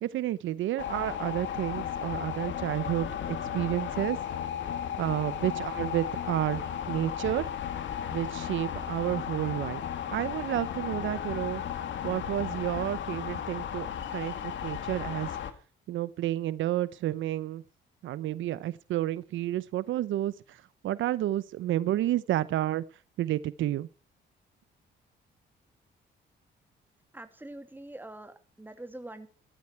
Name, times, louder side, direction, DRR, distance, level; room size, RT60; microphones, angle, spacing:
voice 1, 0.0-4.2 5.0-7.5 8.1-9.8 10.1-11.6 12.0-15.3 15.9-17.6 18.0-22.8 23.2-23.9, right 13 dB, 75° right, 18 dB, 0.7 m, -31 dB
sound 1, 0.8-15.5, left 9 dB, 70° left, 2.3 m, -35 dB
voice 2, 27.1-29.3, right 1 dB, 10° right, 9 dB, 2.5 m, -44 dB
16.5 x 13.0 x 4.7 m, 0.37 s
cardioid pair, 90°, 20 cm